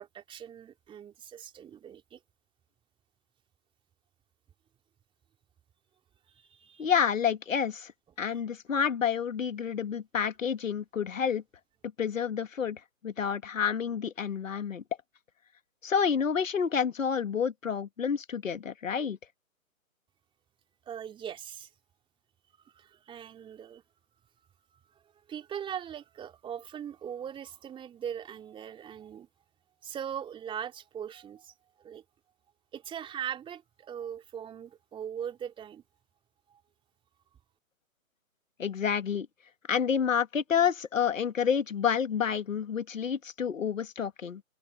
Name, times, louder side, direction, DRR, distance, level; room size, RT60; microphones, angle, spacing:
voice 1, 0.0-2.2 6.3-6.9 20.9-21.7 22.6-23.8 24.7-25.0 25.3-29.3 29.8-31.5 31.8-32.0 32.7-35.8 36.5-36.6, right 9 dB, 10° right, 2.8 m, -40 dB
voice 2, 6.8-7.9 8.2-11.4 12.0-14.8 15.8-19.2 38.6-39.3 39.7-44.4, left 7 dB, 65° left, 1.8 m, -29 dB
figure-of-eight pair, 130°, 42 cm